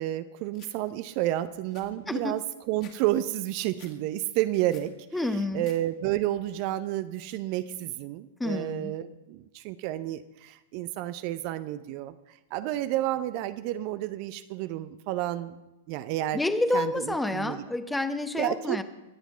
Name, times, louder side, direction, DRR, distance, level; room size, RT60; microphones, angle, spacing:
voice 1, 0.0-15.5 15.9-16.4 16.7-17.6 18.4-18.8, right 14 dB, 45° right, 12 dB, 0.6 m, -31 dB
sound 1, 0.5-0.7 1.2-1.3 1.5-3.0 3.3-3.9 4.3-4.9 5.3-5.8 6.1-6.6, left 8 dB, 40° left, 2.5 m, -54 dB
voice 2, 5.1-5.6 8.4-8.9 16.3-18.8, left 2 dB, 5° left, 11 dB, 1.0 m, -29 dB
22.0 x 8.1 x 5.6 m, 0.99 s
figure-of-eight pair, 100°, 0 cm